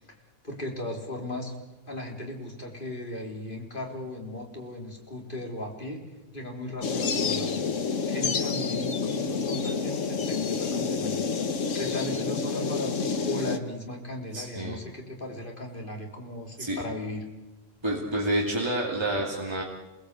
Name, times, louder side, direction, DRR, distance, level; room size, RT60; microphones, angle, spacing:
voice 1, 0.4-1.6 1.9-6.0 6.3-7.6 8.1-11.2 11.7-17.3, left 1 dB, 40° left, 0 dB, 4.0 m, -37 dB
sound 1, 6.8-13.6, left 5 dB, 85° left, 1.6 m, -28 dB
voice 2, 14.3-14.8 16.6-16.8 17.8-19.6, right 1 dB, 20° right, -2 dB, 2.7 m, -28 dB
28.5 x 20.0 x 8.3 m, 1.1 s
omnidirectional pair, 1.3 m